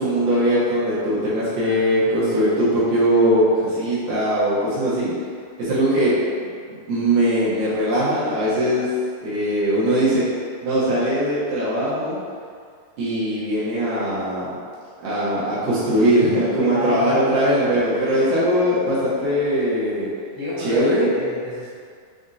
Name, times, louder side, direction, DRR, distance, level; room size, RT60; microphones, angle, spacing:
voice 1, 0.0-5.1 5.6-6.1 6.7-8.9 9.2-10.3 10.6-12.2 13.0-14.6 15.0-20.1 20.6-21.1, equal, 70° right, -10 dB, 2.4 m, -20 dB
voice 2, 1.6-2.3 16.6-17.4 17.8-18.4 20.3-21.8, left 1 dB, 55° left, -16 dB, 1.0 m, -30 dB
6.2 x 2.5 x 2.7 m, 2.1 s
omnidirectional pair, 4.2 m